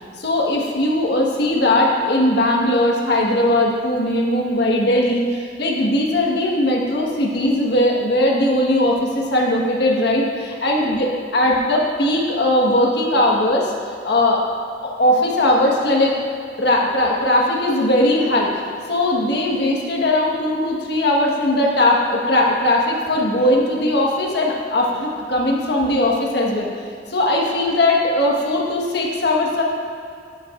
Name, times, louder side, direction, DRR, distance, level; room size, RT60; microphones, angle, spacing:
voice 1, 0.2-14.4 15.0-16.2 16.6-18.5 18.9-26.7 27.1-29.6, left 1 dB, 60° left, -2 dB, 1.4 m, -19 dB
12.0 x 8.6 x 2.5 m, 2.4 s
head